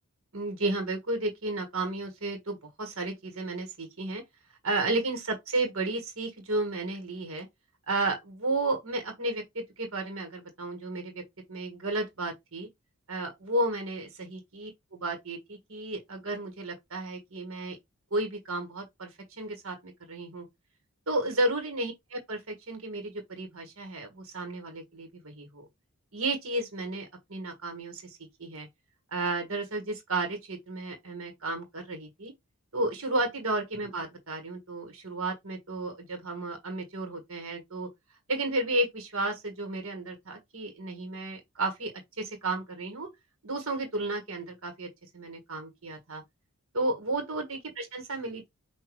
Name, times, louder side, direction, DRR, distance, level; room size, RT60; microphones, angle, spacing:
voice 1, 0.3-4.2 4.6-7.5 7.9-9.4 9.8-11.2 11.5-12.7 13.1-17.8 18.1-19.1 19.4-20.4 21.1-25.6 26.1-28.0 28.4-28.7 29.1-32.3 32.7-37.9 38.3-41.9 42.2-43.1 43.4-44.9 45.1-46.2 46.7-48.5, right 2 dB, 70° right, 1.6 m, -32 dB
5.7 x 2.6 x 3.1 m
head